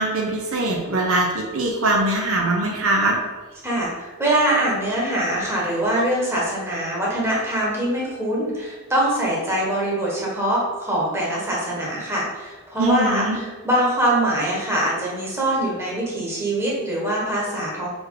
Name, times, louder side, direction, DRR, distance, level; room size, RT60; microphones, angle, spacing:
voice 1, 0.0-3.2 12.8-13.4, right 2 dB, 65° right, 0 dB, 0.9 m, -22 dB
voice 2, 3.6-17.9, right 1 dB, 10° right, -5 dB, 1.4 m, -23 dB
4.6 x 4.4 x 4.9 m, 1.3 s
head